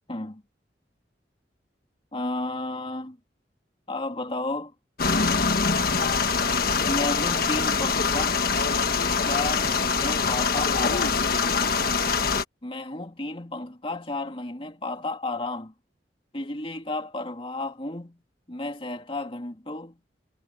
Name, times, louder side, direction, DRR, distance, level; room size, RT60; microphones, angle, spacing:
voice 1, 0.1-0.4 2.1-3.2 3.9-4.7 6.9-8.4 9.2-11.3 12.6-15.7 16.3-18.2 18.5-20.0, left 2 dB, 30° left, 2.6 m, -32 dB
sound 1, 5.0-12.4, left 5 dB, 55° left, 1.4 m, -24 dB
head